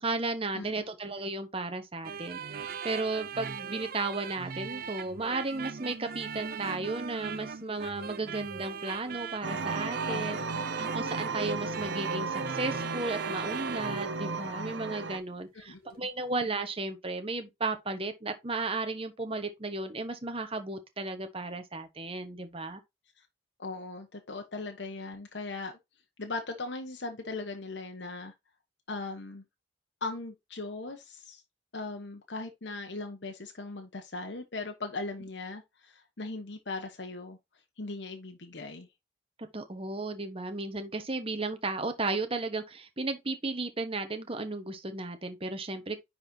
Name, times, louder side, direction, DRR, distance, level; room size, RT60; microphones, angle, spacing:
voice 1, 0.0-2.4 2.8-10.4 10.8-22.8 39.4-46.0, right 3 dB, 30° right, 1.3 m, -34 dB
sound 1, 2.0-14.1, right 6 dB, 55° right, 0.6 m, -39 dB
sound 2, 9.4-15.2, right 3 dB, 80° right, 1.0 m, -34 dB
voice 2, 10.1-10.7 15.5-16.1 23.2-23.3 23.6-25.8 26.2-28.3 28.9-29.4 30.0-31.4 31.7-37.4 37.8-38.9, left 3 dB, 75° left, 1.2 m, -39 dB
9.8 x 4.3 x 2.8 m
head